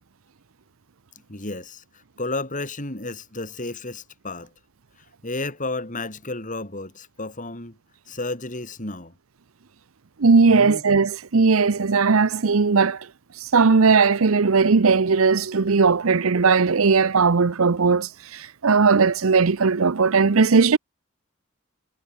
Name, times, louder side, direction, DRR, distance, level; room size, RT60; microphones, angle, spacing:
voice 1, 1.3-1.8 2.2-4.5 5.2-7.8 8.1-9.1 10.5-10.8, left 2 dB, 40° left, 5.4 m, -32 dB
voice 2, 10.2-13.1 13.4-20.8, right 4 dB, 75° right, 0.7 m, -18 dB
head